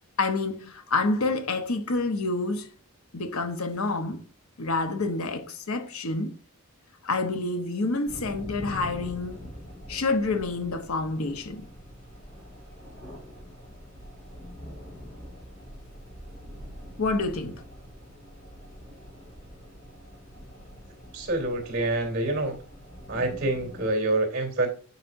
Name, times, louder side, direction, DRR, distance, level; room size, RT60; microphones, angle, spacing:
voice 1, 0.2-2.7 3.1-4.2 4.6-6.4 7.0-9.5 9.9-11.7 17.0-17.6, left 3 dB, 85° left, 0.9 m, -28 dB
sound 1, 8.1-23.9, equal, 35° left, 3.9 m, -44 dB
voice 2, 21.1-22.6 23.1-24.7, right 2 dB, 40° right, 3.2 m, -26 dB
9.5 x 5.7 x 2.6 m
head